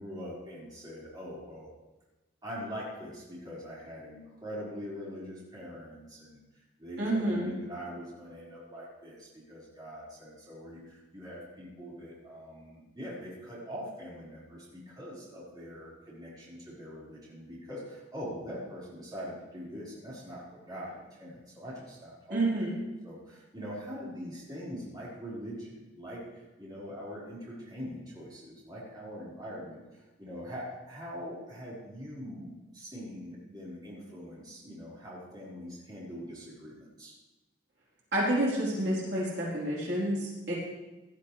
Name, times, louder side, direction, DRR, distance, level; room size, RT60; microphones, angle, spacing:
voice 1, 0.0-1.7 2.4-6.4 6.8-22.4 23.0-26.3 26.6-37.1, equal, 20° right, -8 dB, 5.1 m, -43 dB
voice 2, 7.0-7.5 22.3-22.8 38.1-40.5, right 1 dB, 60° right, -6 dB, 4.0 m, -29 dB
18.5 x 12.0 x 3.4 m, 1.1 s
head